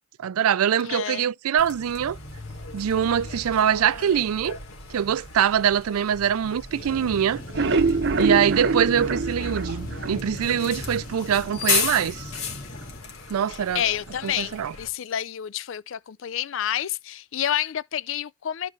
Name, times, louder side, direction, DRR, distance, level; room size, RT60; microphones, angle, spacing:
voice 1, 0.2-2.2 2.7-4.6 4.9-7.4 8.2-12.3 13.3-13.8 14.2-14.7, right 8 dB, 80° right, 0.4 m, -23 dB
voice 2, 0.8-1.3 13.7-18.7, left 10 dB, 60° left, 0.4 m, -29 dB
Bus, 1.6-14.9, left 5 dB, 75° left, 2.7 m, -34 dB
sound 1, 6.7-13.0, equal, 40° left, 2.1 m, -42 dB
sound 2, 7.4-10.6 11.0-11.1 11.4-11.5 11.9-12.0, right 4 dB, 55° right, 0.7 m, -24 dB
13.5 x 4.7 x 3.2 m
head